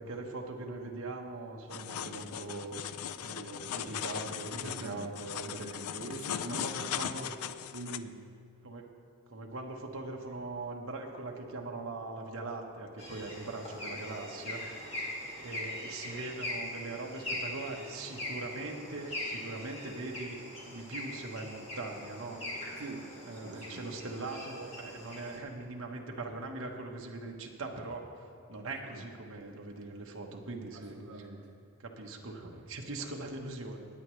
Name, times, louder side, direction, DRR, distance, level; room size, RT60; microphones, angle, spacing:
voice 1, 0.0-2.7 3.2-5.7 6.5-7.3 8.6-8.9 9.3-14.6 15.4-20.4 20.7-22.4 23.2-31.0 31.8-33.8, right 2 dB, 65° right, 1 dB, 1.1 m, -41 dB
sound 1, 1.7-8.0, left 9 dB, 80° left, 0.4 m, -38 dB
voice 2, 4.5-5.1 5.4-7.0 7.7-8.3 22.8-23.9 28.9-29.1 30.7-31.5, right 3 dB, 90° right, 1 dB, 0.9 m, -44 dB
sound 2, 13.0-25.4, left 1 dB, 25° left, 2.2 m, -41 dB
18.5 x 8.6 x 3.2 m, 2.5 s
head